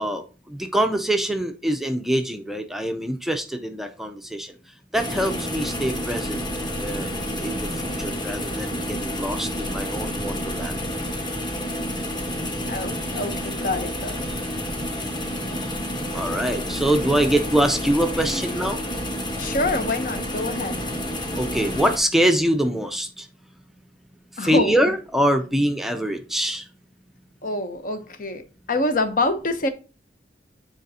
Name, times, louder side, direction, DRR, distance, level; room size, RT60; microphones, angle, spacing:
voice 1, 0.0-4.5 4.9-6.4 6.8-10.7 16.1-18.8 21.3-23.3 24.4-26.7, right 1 dB, ahead, 0.5 m, -24 dB
sound 1, 4.9-22.0, equal, 25° left, 1.1 m, -29 dB
voice 2, 12.7-14.2 18.1-18.4 19.4-20.9 24.4-24.8 27.4-29.7, left 2 dB, 50° left, 0.8 m, -26 dB
9.1 x 4.1 x 2.7 m
head